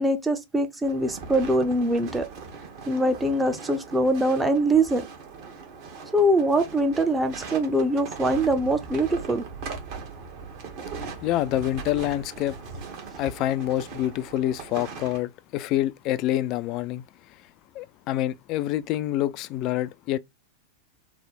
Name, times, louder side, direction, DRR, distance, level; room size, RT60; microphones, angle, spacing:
voice 1, 0.0-2.3 2.9-5.0 6.1-9.4, right 1 dB, 10° right, 0.6 m, -23 dB
sound 1, 0.8-15.2, right 5 dB, 45° right, 1.2 m, -39 dB
voice 2, 11.2-12.6 13.2-17.0 17.7-20.2, left 14 dB, 40° left, 0.3 m, -27 dB
3.4 x 2.1 x 4.2 m
figure-of-eight pair, 90°, 0 cm